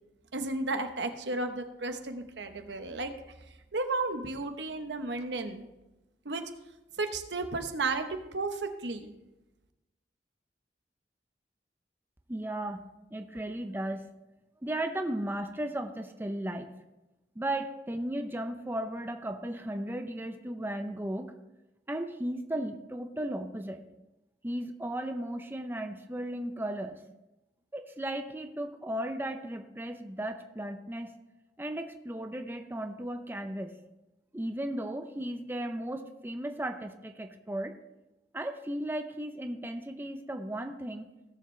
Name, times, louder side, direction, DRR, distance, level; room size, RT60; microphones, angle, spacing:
voice 1, 0.3-3.1 3.7-5.7 6.2-6.4 7.0-8.1 8.3-9.1, right 3 dB, 80° right, 7 dB, 1.0 m, -33 dB
voice 2, 12.3-12.9 13.1-14.1 14.6-16.7 17.4-21.3 21.9-23.8 24.4-27.0 27.7-31.2 31.6-33.7 34.3-37.7 38.3-41.1, right 1 dB, 10° right, 6 dB, 0.6 m, -35 dB
16.5 x 7.0 x 3.2 m, 0.98 s
head